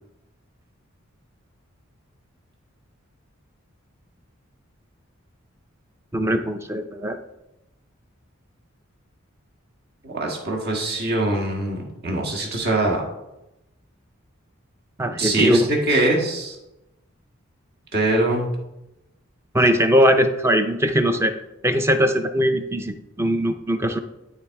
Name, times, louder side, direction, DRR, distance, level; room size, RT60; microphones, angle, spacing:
voice 1, 6.1-7.2 15.0-15.7 19.5-21.3 21.6-24.0, equal, 10° right, 8 dB, 0.5 m, -20 dB
voice 2, 10.0-13.0 15.2-16.6 17.9-18.5, right 2 dB, 50° right, -1 dB, 1.7 m, -23 dB
12.0 x 4.2 x 4.6 m, 0.93 s
head